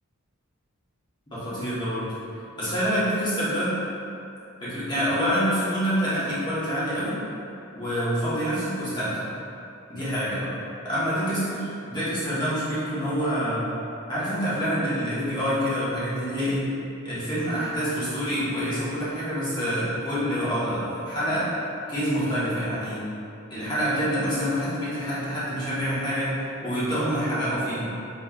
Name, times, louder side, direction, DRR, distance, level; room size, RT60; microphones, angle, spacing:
voice 1, 1.3-2.0 2.6-3.7 4.6-7.2 7.7-9.3 9.9-10.5 10.8-13.6 14.1-16.7 17.0-21.5 21.9-23.0 23.5-26.3 26.6-27.9, equal, 20° left, -12 dB, 1.2 m, -26 dB
4.3 x 3.1 x 2.4 m, 2.7 s
head